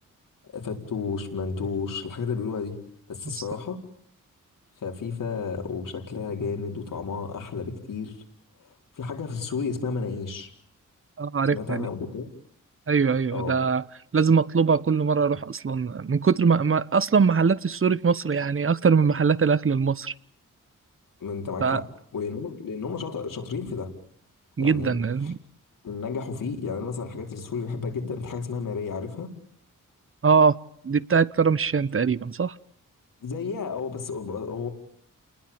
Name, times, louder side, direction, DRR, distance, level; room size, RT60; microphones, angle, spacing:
voice 1, 0.5-2.8 3.1-3.8 4.8-8.1 8.6-10.5 11.5-12.3 13.3-13.6 21.2-21.8 22.1-23.9 24.6-24.9 25.2-25.3 25.8-29.3 33.2-34.7, left 5 dB, 75° left, 4.5 m, -32 dB
voice 2, 11.2-11.9 12.9-13.8 14.1-20.1 21.6-21.8 24.6-25.4 30.2-30.6 30.8-32.5, right 5 dB, 40° right, 1.1 m, -22 dB
29.0 x 20.5 x 8.9 m
cardioid pair, 60°, 33 cm